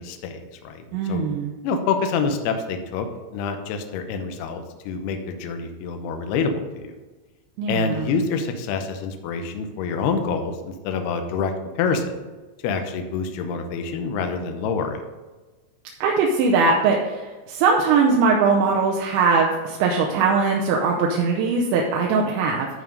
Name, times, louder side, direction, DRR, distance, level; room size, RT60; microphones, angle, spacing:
voice 1, 0.0-1.2 1.6-3.1 3.3-7.0 7.7-12.2 12.6-15.0, left 5 dB, 75° left, 6 dB, 2.6 m, -27 dB
voice 2, 0.9-1.5 7.6-8.1 16.0-17.2 17.5-22.7, right 4 dB, 80° right, -1 dB, 3.0 m, -20 dB
11.5 x 4.8 x 5.3 m, 1.2 s
omnidirectional pair, 5.3 m